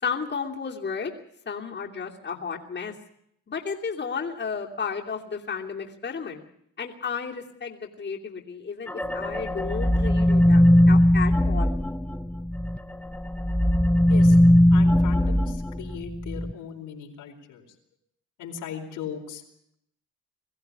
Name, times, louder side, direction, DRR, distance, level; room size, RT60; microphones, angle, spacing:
voice 1, 0.0-1.1 1.5-2.9 3.5-6.4 6.8-11.7, left 6 dB, 35° left, -1 dB, 3.0 m, -33 dB
sound 1, 8.9-12.8 13.1-16.5, left 1 dB, 5° left, 0.9 m, -20 dB
voice 2, 14.7-17.7 18.4-19.4, left 8 dB, 90° left, 1 dB, 4.5 m, -38 dB
22.5 x 15.0 x 9.7 m, 0.73 s
cardioid pair, 90°, 30 cm